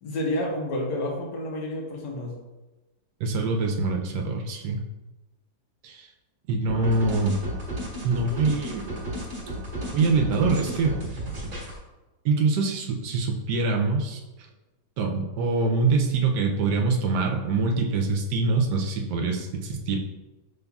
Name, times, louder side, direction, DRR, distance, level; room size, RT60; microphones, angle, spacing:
voice 1, 0.0-2.3, left 1 dB, 75° left, 0 dB, 1.4 m, -29 dB
voice 2, 3.2-4.8 5.8-6.1 6.5-7.4 8.0-8.8 9.9-10.9 12.2-14.2 15.0-20.0, right 3 dB, 75° right, 2 dB, 1.2 m, -24 dB
sound 1, 6.7-11.8, right 1 dB, 25° right, 1.2 m, -33 dB
5.3 x 3.5 x 2.3 m, 1.1 s
omnidirectional pair, 1.9 m